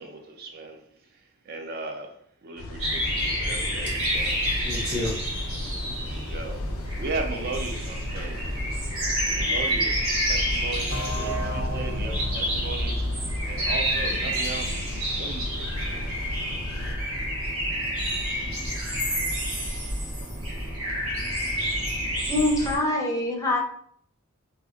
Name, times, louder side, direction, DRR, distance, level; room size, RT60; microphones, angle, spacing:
voice 1, 0.0-4.5 6.0-6.6 7.0-8.6 9.3-13.1 13.5-14.8 15.2-16.2, right 3 dB, 45° right, 0.4 m, -37 dB
sound 1, 2.6-17.0, left 2 dB, 75° left, 0.3 m, -37 dB
sound 2, 2.8-22.8, equal, 80° right, 0.9 m, -29 dB
voice 2, 4.0-5.3 18.1-18.2 18.8-20.4, left 1 dB, 20° right, 1.3 m, -33 dB
sound 3, 10.9-14.5, equal, 65° right, 1.5 m, -32 dB
voice 3, 22.3-23.6, left 1 dB, 15° left, 0.5 m, -24 dB
2.7 x 2.4 x 2.4 m
head